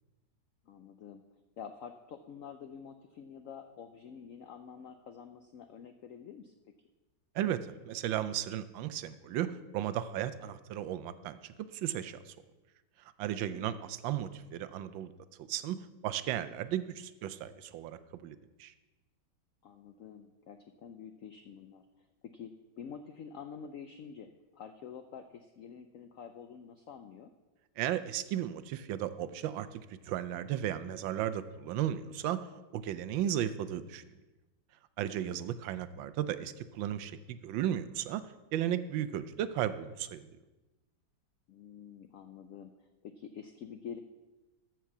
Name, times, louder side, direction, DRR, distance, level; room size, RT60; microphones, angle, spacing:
voice 1, 0.6-1.2 1.6-6.5 13.4-13.9 19.6-27.3 35.1-35.4 41.5-44.0, left 7 dB, 85° left, 7 dB, 0.7 m, -48 dB
voice 2, 7.3-12.3 13.2-15.1 15.4-15.8 16.0-18.7 27.8-32.5 32.7-34.0 35.0-38.2 38.5-40.4, right 11 dB, 85° right, 13 dB, 1.4 m, -35 dB
13.5 x 4.6 x 7.0 m, 1.1 s
omnidirectional pair, 2.0 m